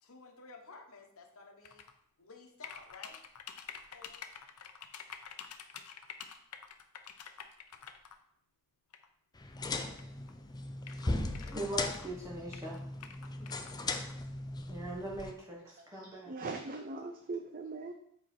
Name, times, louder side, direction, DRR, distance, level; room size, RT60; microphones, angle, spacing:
voice 1, 0.0-1.8 2.2-3.2 3.9-4.2, left 3 dB, 65° left, 3 dB, 1.1 m, -53 dB
sound 1, 1.6-1.9 2.6-8.2 8.9-9.1 10.0-10.1 10.3-10.4 10.8-12.1 12.5-14.1, left 8 dB, 85° left, 0.7 m, -48 dB
sound 2, 9.4-15.3, left 2 dB, 20° left, 0.5 m, -38 dB
voice 2, 11.5-12.8 14.7-16.3, right 1 dB, 15° right, -4 dB, 1.1 m, -40 dB
voice 3, 16.0-17.9, right 3 dB, 40° right, 5 dB, 0.5 m, -40 dB
7.7 x 4.4 x 4.3 m, 0.71 s
head